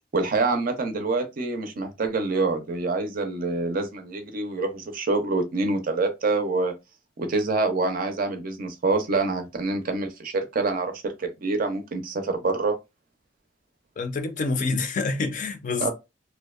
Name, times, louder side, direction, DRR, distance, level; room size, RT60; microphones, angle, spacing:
voice 1, 0.1-6.7 7.2-12.8 15.8-15.9, right 3 dB, 50° right, 0.5 m, -26 dB
voice 2, 14.0-15.9, left 3 dB, 45° left, 0.4 m, -27 dB
2.6 x 2.1 x 2.3 m
head